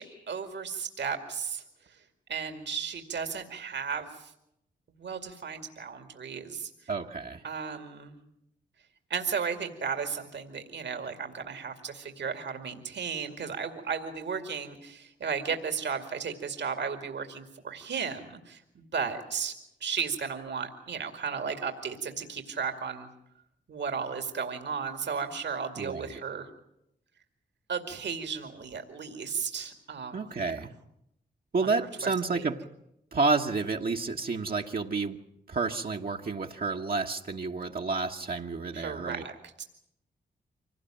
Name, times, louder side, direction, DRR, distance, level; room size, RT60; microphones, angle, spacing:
voice 1, 0.0-1.6 2.3-4.3 5.0-6.7 7.4-8.2 9.1-19.5 19.8-23.1 23.7-26.5 27.7-30.5 31.6-31.7 32.0-32.4 38.7-39.3 39.6-39.7, right 6 dB, 70° right, 7 dB, 2.3 m, -34 dB
voice 2, 6.9-7.4 25.8-26.2 30.1-30.7 31.5-32.6 33.1-35.2 35.5-39.2, right 4 dB, 50° right, 0 dB, 1.3 m, -30 dB
25.0 x 17.5 x 9.0 m, 0.81 s
supercardioid pair, 40°, 19 cm